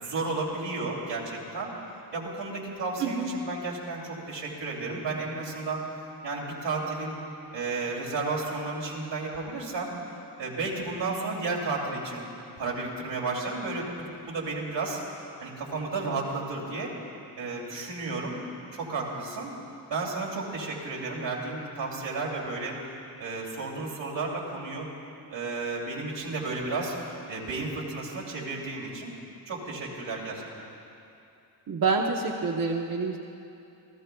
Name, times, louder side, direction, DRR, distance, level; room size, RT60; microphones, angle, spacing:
voice 1, 0.0-1.7 2.1-5.8 6.2-7.2 7.5-9.9 10.4-12.2 12.6-15.0 15.4-16.9 17.4-18.4 18.7-19.5 19.9-22.8 23.2-24.9 25.3-26.9 27.3-29.1 29.5-30.5, right 3 dB, 85° right, -3 dB, 2.8 m, -32 dB
voice 2, 3.0-3.3 31.7-33.2, right 4 dB, 50° right, 0 dB, 0.9 m, -27 dB
28.5 x 14.5 x 2.3 m, 2.7 s
cardioid pair, 85°, 42 cm